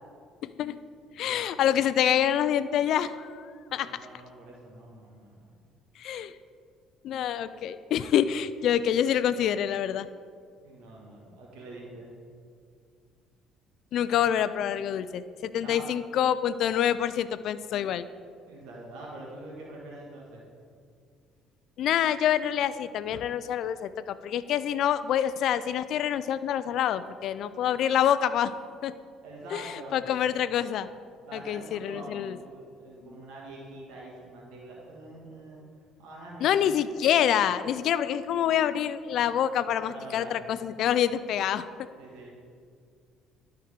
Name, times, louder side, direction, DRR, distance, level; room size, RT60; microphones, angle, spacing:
voice 1, 0.4-0.8 1.2-3.4 3.7-3.9 6.0-6.3 7.0-10.1 13.9-18.0 21.8-28.5 28.8-28.9 29.5-30.9 31.3-32.4 36.4-41.7, left 10 dB, 65° left, 14 dB, 0.4 m, -26 dB
voice 2, 1.2-1.5 3.7-5.6 10.6-12.1 15.6-15.9 18.5-20.4 29.2-30.0 31.3-35.6 36.0-36.8 39.8-40.4 42.0-42.3, right 2 dB, 80° right, -3 dB, 1.6 m, -45 dB
12.0 x 4.6 x 5.0 m, 2.2 s
supercardioid pair, 90°, 0 cm